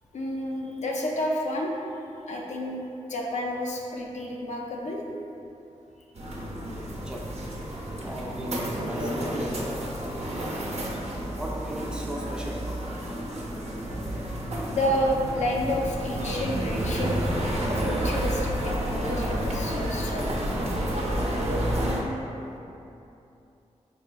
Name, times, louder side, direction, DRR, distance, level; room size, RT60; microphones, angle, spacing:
voice 1, 0.1-1.8 2.3-2.8 3.1-5.0 14.7-20.6, left 1 dB, 65° left, -1 dB, 0.5 m, -30 dB
sound 1, 6.2-22.0, right 1 dB, 55° right, 0.6 m, -30 dB
voice 2, 7.0-7.5 8.0-10.0 11.3-12.8, equal, 5° right, -2 dB, 0.5 m, -37 dB
3.8 x 3.1 x 2.2 m, 2.8 s
cardioid pair, 55°, 13 cm